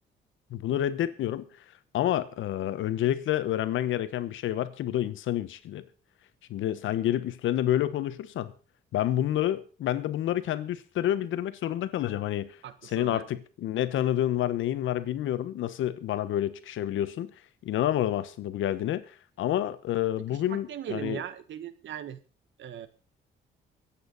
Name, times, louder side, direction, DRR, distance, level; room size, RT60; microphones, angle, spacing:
voice 1, 0.5-1.5 1.9-5.9 6.5-8.5 8.9-12.6 12.8-17.3 17.6-21.2, left 12 dB, 80° left, 1.2 m, -29 dB
voice 2, 12.6-13.3 20.5-22.2 22.6-22.9, right 10 dB, 70° right, 1.4 m, -38 dB
23.0 x 8.8 x 4.1 m
cardioid pair, 90°, 20 cm